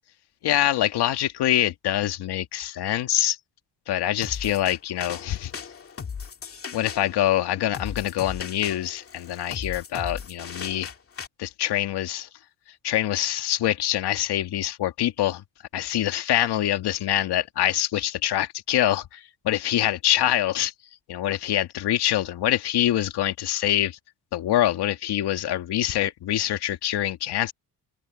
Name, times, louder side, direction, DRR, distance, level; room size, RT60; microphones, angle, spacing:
voice 1, 0.4-3.4 3.9-5.5 6.7-10.9 11.4-12.3 12.8-15.4 15.7-20.7 21.1-24.0 24.3-27.5, left 12 dB, 75° left, 2.2 m, -25 dB
sound 1, 4.2-11.3, left 6 dB, 35° left, 2.1 m, -37 dB
cardioid pair, 150°, 39 cm